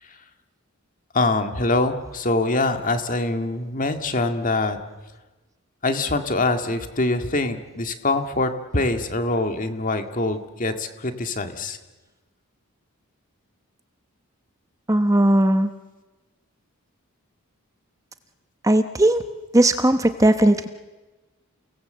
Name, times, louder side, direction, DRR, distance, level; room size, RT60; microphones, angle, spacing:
voice 1, 1.1-4.8 5.8-11.8, left 2 dB, 35° left, 7 dB, 1.9 m, -24 dB
voice 2, 14.9-15.7 18.6-19.2 19.5-20.7, right 1 dB, 15° right, 9 dB, 0.9 m, -17 dB
30.0 x 19.0 x 7.8 m, 1.2 s
head